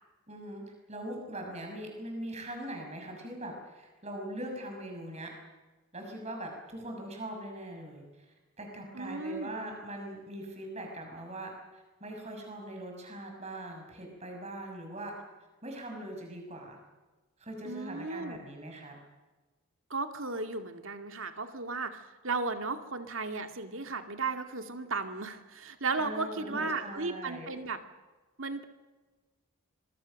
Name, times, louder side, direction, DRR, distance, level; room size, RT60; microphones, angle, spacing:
voice 1, 0.3-0.6 0.9-5.3 5.9-15.1 15.6-16.8 17.4-19.0 26.0-27.5, right 1 dB, 30° right, 2 dB, 6.4 m, -41 dB
voice 2, 8.9-9.5 17.6-18.4 19.9-27.8 28.4-28.6, right 3 dB, 60° right, 6 dB, 2.3 m, -35 dB
26.0 x 23.5 x 6.5 m, 1.2 s
head